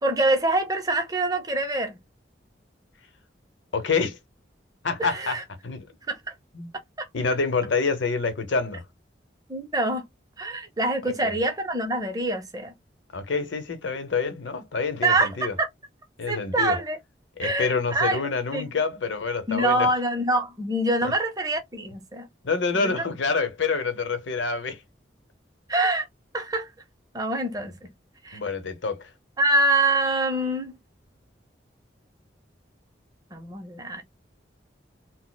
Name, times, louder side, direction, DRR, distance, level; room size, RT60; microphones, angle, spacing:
voice 1, 0.0-2.0 5.1-5.4 6.1-6.2 7.0-7.1 9.5-10.0 10.4-12.7 15.0-15.7 16.3-17.0 17.4-18.2 18.5-18.7 19.5-22.3 22.7-22.9 25.7-26.1 26.3-26.7 27.1-27.7 28.2-28.4 29.4-30.8 33.3-34.0, right 2 dB, 20° right, 0.6 m, -25 dB
voice 2, 3.7-4.2 4.8-5.9 6.5-6.7 7.1-8.8 11.2-11.3 13.1-15.5 16.2-16.8 17.4-19.9 22.4-24.8 27.6-27.7 28.3-29.1, left 4 dB, 85° left, 0.8 m, -27 dB
4.0 x 2.0 x 2.2 m
head